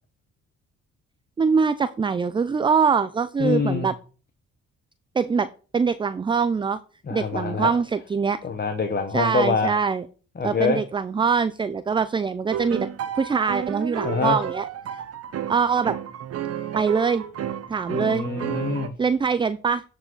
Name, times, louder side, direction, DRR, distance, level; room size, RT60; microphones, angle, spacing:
voice 1, 1.4-3.9 5.2-5.5 5.7-6.8 7.1-8.4 9.1-10.1 10.4-12.9 13.1-15.0 15.5-15.9 16.7-17.2 17.7-18.2 19.0-19.8, right 5 dB, 15° right, 14 dB, 0.3 m, -23 dB
voice 2, 3.4-3.9 7.1-7.7 8.4-9.7 10.4-10.8 14.0-14.4 17.9-18.9, left 4 dB, 30° left, 5 dB, 1.0 m, -25 dB
sound 1, 12.5-18.9, right 9 dB, 55° right, 0.8 m, -32 dB
8.9 x 4.9 x 3.8 m, 0.38 s
cardioid pair, 90°, 30 cm